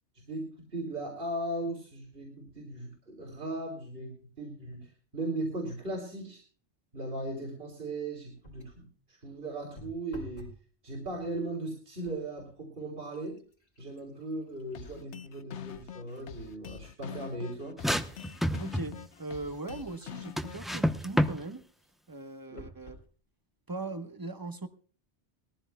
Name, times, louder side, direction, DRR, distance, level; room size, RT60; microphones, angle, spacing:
voice 1, 0.3-6.4 6.9-10.5 10.8-13.4 13.8-17.8 22.5-22.6, right 2 dB, 55° right, 3.8 m, -38 dB
sound 1, 8.4-8.9 9.8-10.7 11.0-11.5 12.3-12.4 12.8-16.4 16.9-17.0 17.6-20.4 22.6-23.1 23.8-23.9 24.1-24.2, equal, 65° left, 3.4 m, -54 dB
manneken+drum, 14.7-20.8, left 9 dB, 90° left, 1.2 m, -45 dB
sound 2, 17.8-19.0 20.4-21.4, equal, ahead, 0.7 m, -28 dB
voice 2, 18.6-21.6 22.1-23.0 23.7-24.7, right 3 dB, 20° right, 1.2 m, -39 dB
21.0 x 14.5 x 2.3 m
omnidirectional pair, 1.1 m